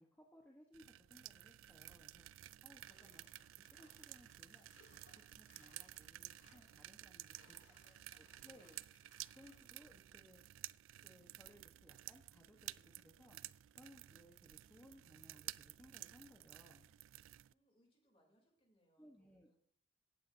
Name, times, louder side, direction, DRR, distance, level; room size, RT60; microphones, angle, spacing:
voice 1, 0.0-2.3 2.6-3.3 3.6-4.7 5.1-7.6 8.2-8.8 9.3-10.4 11.0-13.4 13.7-16.9 19.0-19.5, equal, 10° left, -1 dB, 1.1 m, -64 dB
sound 1, 0.7-17.5, right 15 dB, 85° right, 0.3 m, -54 dB
sound 2, 2.8-9.7, left 3 dB, 70° left, 3.0 m, -71 dB
voice 2, 7.4-8.7 17.5-19.5, equal, 30° left, 0 dB, 3.1 m, -76 dB
17.0 x 8.5 x 2.7 m, 0.66 s
head